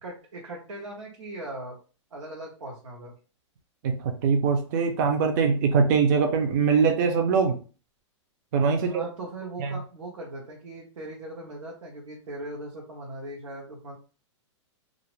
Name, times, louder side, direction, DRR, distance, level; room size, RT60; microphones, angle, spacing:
voice 1, 0.0-1.8 2.1-3.1 8.8-14.0, right 1 dB, 90° right, -3 dB, 0.9 m, -39 dB
voice 2, 3.8-7.6 8.5-9.0 9.6-9.8, right 5 dB, 40° right, 5 dB, 0.4 m, -22 dB
2.4 x 2.0 x 3.0 m, 0.36 s
hypercardioid pair, 150°, 16 cm